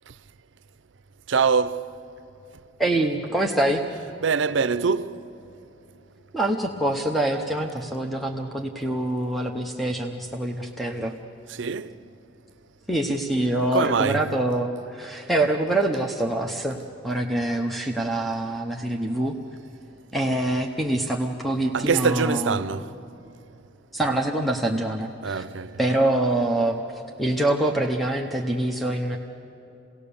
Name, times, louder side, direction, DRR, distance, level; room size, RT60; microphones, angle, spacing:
voice 1, 1.3-1.9 4.2-5.2 11.6-11.9 13.7-14.3 21.7-22.9 25.2-25.8, right 5 dB, 70° right, 0.6 m, -23 dB
voice 2, 2.8-3.8 6.3-11.1 12.9-16.8 17.0-19.3 20.1-22.6 23.9-25.4 25.8-26.8 27.2-29.2, right 1 dB, ahead, 0.8 m, -25 dB
28.5 x 18.5 x 7.0 m
head